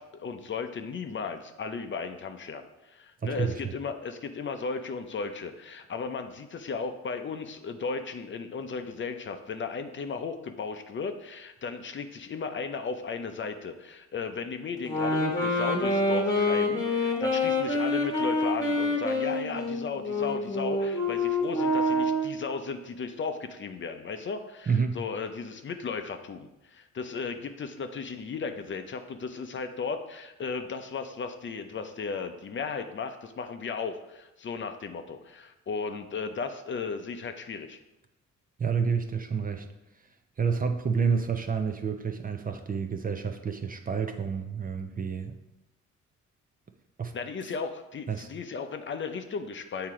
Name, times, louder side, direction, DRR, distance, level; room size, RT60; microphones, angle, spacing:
voice 1, 0.0-37.8 47.1-49.9, left 5 dB, 40° left, 7 dB, 0.6 m, -35 dB
voice 2, 3.2-3.6 24.7-25.0 38.6-39.7 40.4-45.4 47.0-47.1 48.1-48.3, right 6 dB, 30° right, 7 dB, 0.5 m, -29 dB
sound 1, 14.8-22.4, left 2 dB, 10° left, 1.3 m, -27 dB
7.4 x 2.9 x 4.8 m, 0.95 s
cardioid pair, 90°, 30 cm